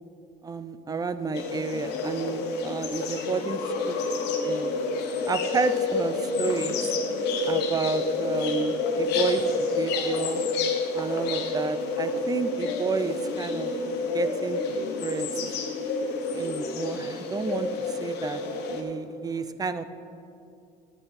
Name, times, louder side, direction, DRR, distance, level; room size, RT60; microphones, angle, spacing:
voice 1, 0.4-4.0 4.4-4.7 5.3-6.9 7.5-10.4 10.9-13.7 14.1-14.6 15.0-15.3 16.3-18.4 18.7-19.8, right 4 dB, 20° right, 12 dB, 0.5 m, -31 dB
sound 1, 1.3-18.8, left 3 dB, 85° left, 1.1 m, -29 dB
10.5 x 7.7 x 5.0 m, 2.5 s
cardioid pair, 110°, 17 cm